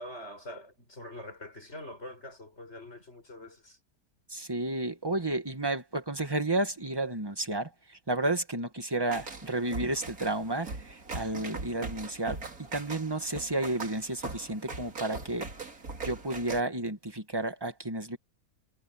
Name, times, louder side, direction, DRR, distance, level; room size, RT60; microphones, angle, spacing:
voice 1, 0.0-3.8, left 1 dB, 45° left, 7.2 m, -44 dB
voice 2, 4.3-15.5 16.0-18.2, right 2 dB, 15° right, 1.7 m, -32 dB
sound 1, 9.1-16.6, right 3 dB, 70° right, 3.5 m, -40 dB
omnidirectional pair, 1.6 m